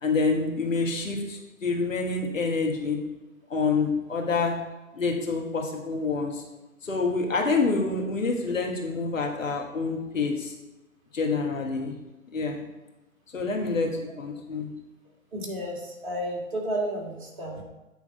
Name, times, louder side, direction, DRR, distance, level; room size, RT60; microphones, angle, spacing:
voice 1, 0.0-3.0 3.5-4.6 4.9-6.4 6.8-10.5 11.1-11.9 12.3-12.6 13.3-13.9 14.2-14.7, left 4 dB, 65° left, 1 dB, 1.6 m, -27 dB
voice 2, 15.3-17.6, right 1 dB, 35° right, -2 dB, 1.8 m, -32 dB
8.6 x 3.4 x 5.3 m, 1.1 s
figure-of-eight pair, 140°, 42 cm